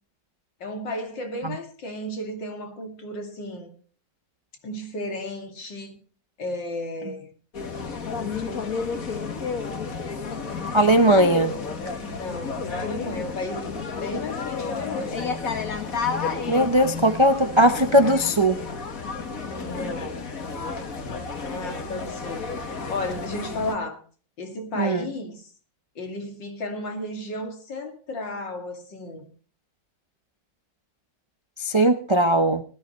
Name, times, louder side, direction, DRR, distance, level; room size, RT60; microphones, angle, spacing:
voice 1, 0.6-3.7 4.6-6.0 6.4-7.3 12.0-13.7 14.0-15.3 19.5-20.3 21.4-24.0 24.4-25.5 26.0-29.3, left 1 dB, 85° left, 3.1 m, -33 dB
sound 1, 7.5-23.8, left 5 dB, 50° left, 2.1 m, -31 dB
voice 2, 10.7-11.5 16.5-18.6 24.8-25.0 31.6-32.6, right 1 dB, 50° right, 0.3 m, -19 dB
19.0 x 13.5 x 3.1 m
omnidirectional pair, 1.9 m